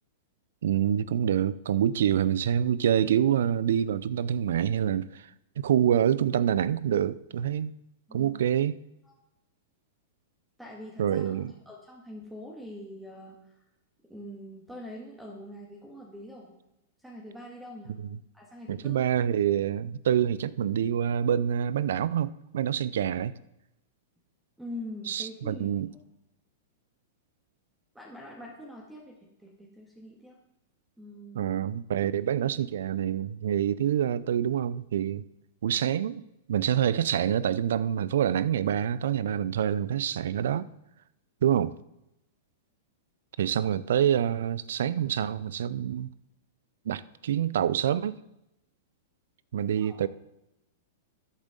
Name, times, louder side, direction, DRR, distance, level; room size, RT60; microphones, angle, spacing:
voice 1, 0.6-5.2 5.6-7.7 8.1-8.8 11.0-11.5 18.0-18.2 18.7-23.3 25.1-25.9 31.3-35.2 35.6-36.2 36.5-40.7 41.4-41.7 43.4-46.1 46.9-48.2 49.5-50.1, right 9 dB, 70° right, 0.5 m, -26 dB
voice 2, 10.6-13.6 14.1-16.5 17.0-17.9 18.3-19.0 24.6-25.7 27.9-30.4 31.0-31.6 49.8-50.1, left 1 dB, 5° right, 2.0 m, -44 dB
13.5 x 8.3 x 3.9 m
hypercardioid pair, 105°, 0 cm